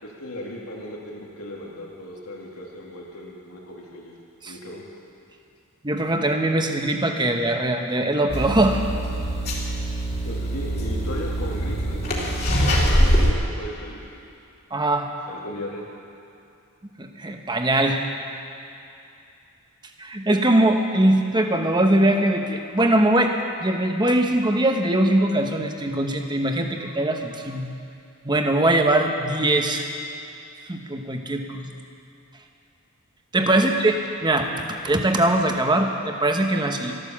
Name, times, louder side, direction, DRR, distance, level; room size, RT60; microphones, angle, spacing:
voice 1, 0.0-4.1 4.5-4.8 10.2-12.0 12.8-14.1 15.3-15.9 33.5-33.6, left 1 dB, 85° left, -3 dB, 2.9 m, -36 dB
voice 2, 5.8-8.8 14.7-15.1 17.0-18.0 20.0-23.3 23.6-27.7 28.2-29.8 30.7-31.7 33.3-33.9 34.2-36.9, right 1 dB, 20° right, 4 dB, 1.0 m, -21 dB
sound 1, 8.3-13.3, equal, 45° left, 2.6 m, -23 dB
13.5 x 12.0 x 7.3 m, 2.6 s
head